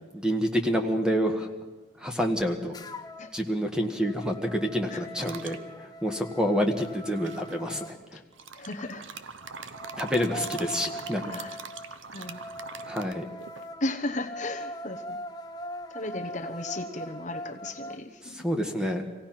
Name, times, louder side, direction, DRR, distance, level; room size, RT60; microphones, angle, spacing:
voice 1, 0.1-1.5 2.0-2.7 3.3-8.2 10.0-11.2 12.9-13.2 18.2-19.1, equal, 5° right, 4 dB, 1.4 m, -28 dB
sound 1, 2.7-3.4 3.8-8.0 9.4-18.0, equal, 20° left, 0.8 m, -41 dB
sound 2, 5.2-5.6 6.8-7.6 8.3-13.7, right 5 dB, 75° right, 0.9 m, -42 dB
voice 2, 8.5-9.2 11.2-11.6 12.1-12.4 13.8-15.2 15.9-18.5, left 2 dB, 40° left, 4 dB, 1.1 m, -35 dB
26.0 x 17.0 x 5.9 m, 1.2 s
head